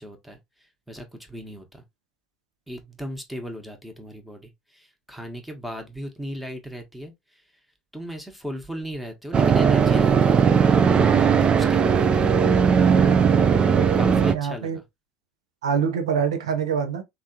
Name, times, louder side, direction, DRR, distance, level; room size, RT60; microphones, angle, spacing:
voice 1, 0.0-1.8 2.7-7.4 7.9-12.7 13.6-14.8, equal, ahead, 1.0 m, -37 dB
sound 1, 9.3-14.3, right 6 dB, 35° right, 0.3 m, -18 dB
voice 2, 13.5-14.8 15.6-17.0, right 7 dB, 80° right, 0.5 m, -26 dB
3.3 x 2.3 x 2.7 m
hypercardioid pair, 70°, 3 cm